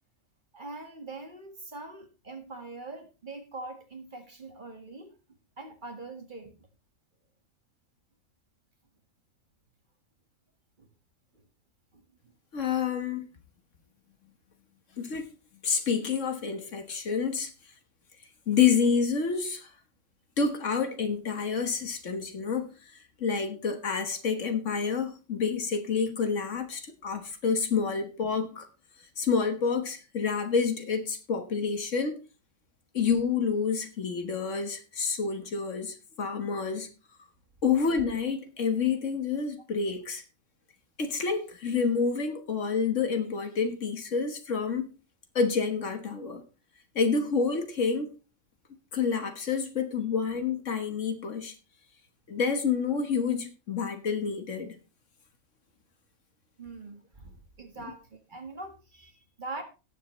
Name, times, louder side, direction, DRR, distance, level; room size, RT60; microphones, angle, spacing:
voice 1, 0.5-5.1 5.6-6.6 10.8-10.9 11.9-12.0 56.6-59.6, right 3 dB, 35° right, 1.7 m, -43 dB
voice 2, 12.5-13.3 15.0-15.3 15.6-17.5 18.5-19.7 20.4-28.7 29.2-32.2 32.9-36.9 37.6-40.2 41.0-44.9 45.4-46.4 47.0-48.1 48.9-51.6 52.3-54.8, left 5 dB, 65° left, 1.7 m, -28 dB
18.0 x 7.2 x 3.1 m
omnidirectional pair, 1.4 m